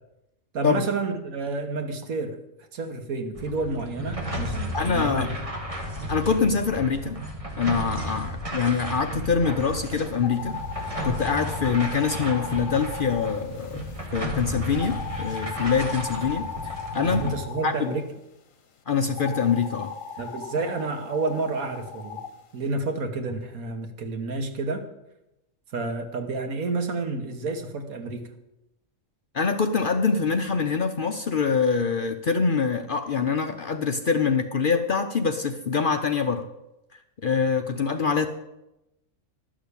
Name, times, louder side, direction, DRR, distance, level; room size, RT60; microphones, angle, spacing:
voice 1, 0.5-2.4 2.7-5.3 17.0-18.0 20.2-22.2 22.5-24.8 25.7-28.3, right 3 dB, 80° right, 6 dB, 1.7 m, -30 dB
sound 1, 3.4-17.4, equal, 25° right, 2.0 m, -33 dB
voice 2, 4.7-5.3 6.1-7.2 7.6-10.6 11.0-13.8 14.1-17.3 17.6-18.0 18.9-19.9 29.3-36.5 37.2-38.3, left 5 dB, 50° left, 7 dB, 0.6 m, -24 dB
sound 2, 10.2-14.1 14.7-18.0 19.1-22.3, left 6 dB, 70° left, 1.5 m, -37 dB
12.0 x 6.3 x 8.3 m, 0.91 s
omnidirectional pair, 1.5 m